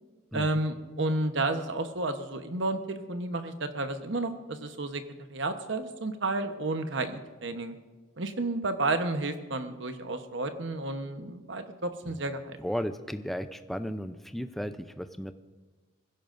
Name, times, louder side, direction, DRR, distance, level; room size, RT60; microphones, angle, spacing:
voice 1, 0.3-5.0 5.3-7.7 8.2-12.6, right 2 dB, 65° right, 8 dB, 1.0 m, -31 dB
voice 2, 12.6-15.3, equal, ahead, 9 dB, 0.5 m, -34 dB
22.0 x 16.0 x 2.6 m, 1.3 s
head